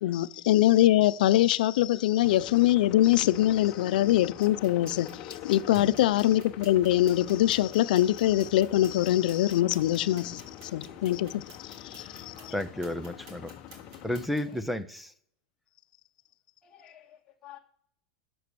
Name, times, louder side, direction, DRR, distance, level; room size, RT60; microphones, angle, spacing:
voice 1, 0.0-10.4 10.7-12.5, left 14 dB, 75° left, 0.7 m, -23 dB
sound 1, 2.2-14.3, left 11 dB, 35° left, 1.0 m, -45 dB
sound 2, 4.4-14.6, right 2 dB, 55° right, 4.5 m, -54 dB
voice 2, 12.5-13.5 14.0-15.1, left 1 dB, ahead, 0.5 m, -32 dB
voice 3, 16.6-17.6, left 11 dB, 20° left, 2.0 m, -52 dB
13.0 x 6.3 x 6.9 m
supercardioid pair, 170°, 5 cm